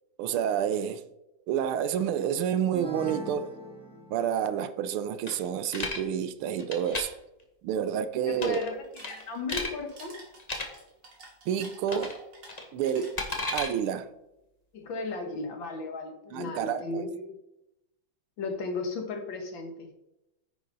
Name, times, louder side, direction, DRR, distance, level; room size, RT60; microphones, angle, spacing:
voice 1, 0.2-1.0 1.5-3.5 4.1-7.1 7.6-8.6 11.5-12.2 12.7-13.2 13.5-14.1 16.3-17.0, right 9 dB, 90° right, 1.6 m, -29 dB
sound 1, 2.7-4.6, equal, 5° left, 1.3 m, -41 dB
sound 2, 5.3-6.0 6.6-7.0 8.3-8.7 9.0-9.7 10.4-10.7 11.9-12.2 12.5-13.7, left 2 dB, 25° left, 1.2 m, -33 dB
voice 2, 8.3-10.1 14.7-17.4 18.4-19.9, left 3 dB, 65° left, 2.2 m, -35 dB
sound 3, 8.7-14.0, right 2 dB, 60° right, 3.2 m, -49 dB
10.0 x 9.3 x 4.0 m
omnidirectional pair, 2.3 m